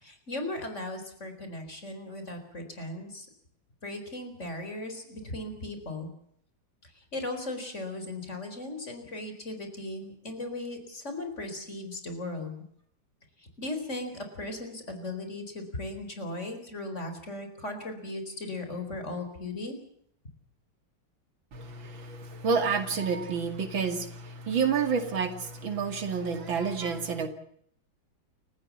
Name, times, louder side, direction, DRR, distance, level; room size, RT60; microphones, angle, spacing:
voice 1, 0.0-3.3 3.8-6.1 7.0-12.6 13.4-19.8, left 2 dB, 35° left, 6 dB, 4.5 m, -37 dB
voice 2, 21.5-27.3, right 5 dB, 85° right, 8 dB, 3.1 m, -29 dB
29.0 x 15.5 x 7.3 m, 0.68 s
omnidirectional pair, 2.1 m